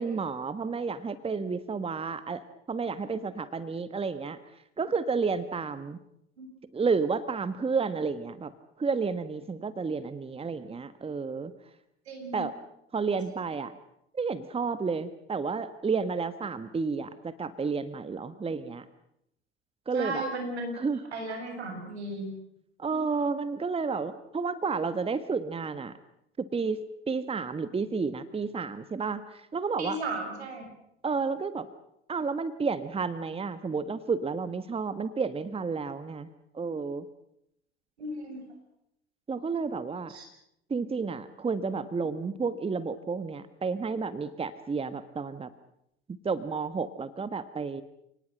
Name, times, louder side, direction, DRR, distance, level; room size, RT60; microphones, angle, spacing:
voice 1, 0.0-2.4 2.7-4.4 4.8-6.0 6.7-8.5 8.8-11.5 12.3-12.5 12.9-13.7 14.1-18.8 19.9-20.2 20.8-21.0 22.8-25.9 26.4-26.8 27.1-30.0 31.0-31.7 32.1-36.3 36.5-37.0 39.3-40.1 40.7-45.5 46.1-47.8, right 5 dB, 15° right, 14 dB, 1.4 m, -31 dB
voice 2, 12.1-12.4 19.9-20.7 21.1-22.3 29.8-30.6 38.0-38.4 40.1-40.3, right 2 dB, 80° right, 4 dB, 7.9 m, -35 dB
30.0 x 19.0 x 7.8 m, 0.80 s
figure-of-eight pair, 75°, 32 cm